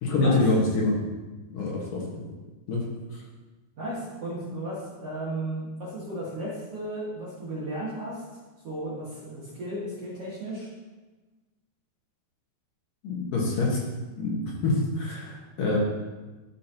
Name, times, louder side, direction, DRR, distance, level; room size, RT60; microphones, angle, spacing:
voice 1, 0.0-0.9 1.5-2.0 2.7-2.8 13.0-13.8 14.2-15.8, left 3 dB, 60° left, -3 dB, 2.7 m, -25 dB
voice 2, 3.8-8.2 8.6-10.7, right 1 dB, 45° right, -8 dB, 2.3 m, -34 dB
13.0 x 6.3 x 2.9 m, 1.2 s
omnidirectional pair, 4.9 m